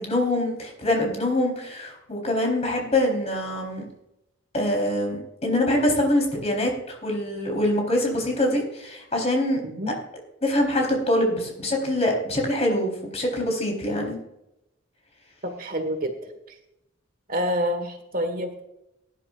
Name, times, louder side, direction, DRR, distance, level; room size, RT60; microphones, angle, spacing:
voice 1, 0.0-3.8 4.5-9.6 10.4-14.2, left 1 dB, 35° left, 1 dB, 3.9 m, -24 dB
voice 2, 9.6-10.0 15.4-16.1 17.3-18.6, equal, 45° right, 7 dB, 1.5 m, -27 dB
19.0 x 11.0 x 2.5 m, 0.87 s
head